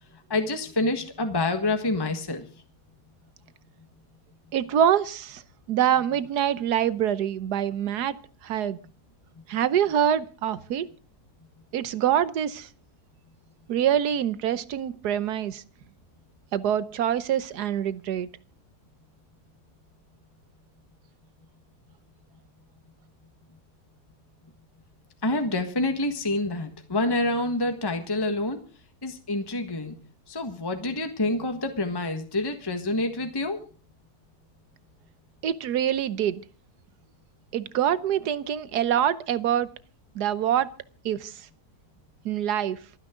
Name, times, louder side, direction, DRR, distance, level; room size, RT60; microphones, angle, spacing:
voice 1, 0.3-2.5 25.2-28.6 29.0-29.9 30.3-33.6, left 2 dB, 15° left, 6 dB, 1.4 m, -27 dB
voice 2, 4.5-5.4 5.7-8.1 8.4-8.8 9.5-10.9 11.7-12.7 13.7-15.6 16.5-18.3 35.4-36.4 37.5-39.7 40.1-40.7 41.0-41.5 42.2-42.8, right 10 dB, 80° right, 16 dB, 1.5 m, -25 dB
27.0 x 9.9 x 3.8 m, 0.37 s
omnidirectional pair, 1.7 m